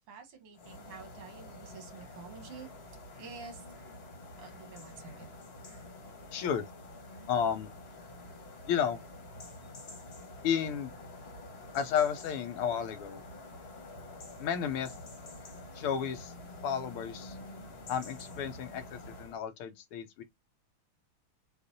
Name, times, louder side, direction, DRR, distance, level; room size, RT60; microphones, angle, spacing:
voice 1, 0.1-2.7 3.1-3.6 4.4-5.3, right 5 dB, 85° right, 2.3 m, -49 dB
sound 1, 0.5-19.4, left 2 dB, 35° left, 1.1 m, -48 dB
voice 2, 6.3-6.6 7.3-7.7 8.7-9.0 10.4-10.9 11.7-13.2 14.4-14.9 15.7-16.3 16.6-17.4 17.9-20.2, left 8 dB, 85° left, 1.7 m, -32 dB
6.4 x 2.5 x 2.7 m
omnidirectional pair, 2.4 m